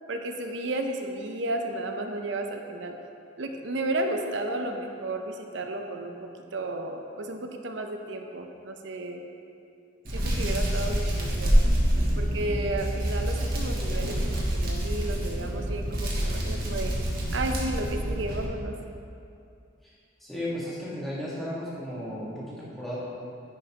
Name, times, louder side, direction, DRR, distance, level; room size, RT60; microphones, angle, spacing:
voice 1, 0.1-2.9 3.4-9.2 10.1-11.5 12.2-16.9 17.3-18.7, right 2 dB, 65° right, 4 dB, 0.6 m, -33 dB
Hands, 10.0-18.4, equal, 50° right, 1.3 m, -27 dB
voice 2, 20.2-23.0, left 1 dB, ahead, -9 dB, 1.6 m, -34 dB
10.0 x 5.4 x 2.9 m, 2.5 s
head